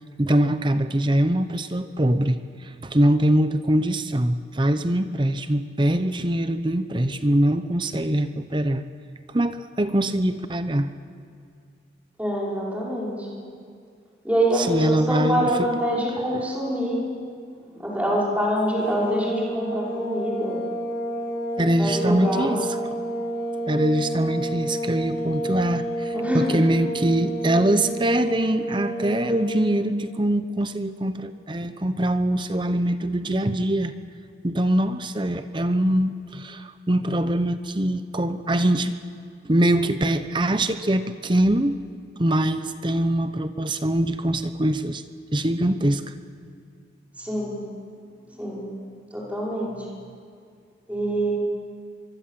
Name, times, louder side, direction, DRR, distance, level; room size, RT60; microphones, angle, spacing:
voice 1, 0.2-8.8 9.3-10.9 14.6-15.5 21.6-22.6 23.7-33.9 34.4-38.9 39.4-41.8 42.2-45.0 45.3-46.1, right 1 dB, 25° right, 10 dB, 0.8 m, -23 dB
voice 2, 12.2-13.4 14.2-17.0 17.7-20.6 21.8-22.6 26.1-26.6 47.2-47.6 48.3-48.7 49.1-50.0 50.9-51.3, equal, 10° right, -5 dB, 5.6 m, -25 dB
sound 1, 18.8-29.8, right 1 dB, 15° left, 3.4 m, -30 dB
24.5 x 23.5 x 7.7 m, 2.3 s
head